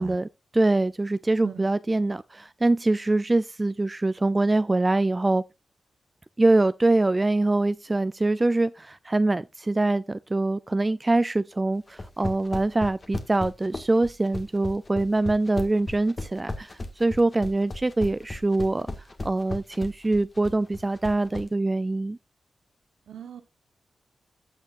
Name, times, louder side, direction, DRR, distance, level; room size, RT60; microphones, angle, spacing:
voice 1, 0.0-5.4 6.4-18.9 19.2-22.2, right 2 dB, 25° right, 0.4 m, -24 dB
sound 1, 11.9-21.5, left 2 dB, 40° left, 1.8 m, -35 dB
voice 2, 23.1-23.4, right 8 dB, 90° right, 1.1 m, -40 dB
15.0 x 6.5 x 2.5 m
cardioid pair, 60°, 0 cm